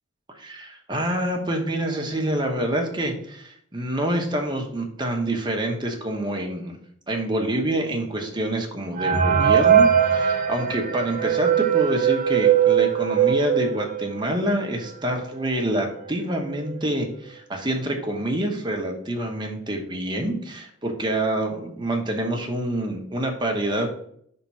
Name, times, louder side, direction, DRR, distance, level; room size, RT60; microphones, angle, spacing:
voice 1, 0.4-6.8 7.1-23.9, right 1 dB, 25° right, 2 dB, 1.1 m, -27 dB
sound 1, 9.0-14.4 14.9-15.0 15.2-15.3 16.0-16.1 16.5-16.8, right 8 dB, 45° right, 0.6 m, -20 dB
5.8 x 3.7 x 5.5 m, 0.66 s
head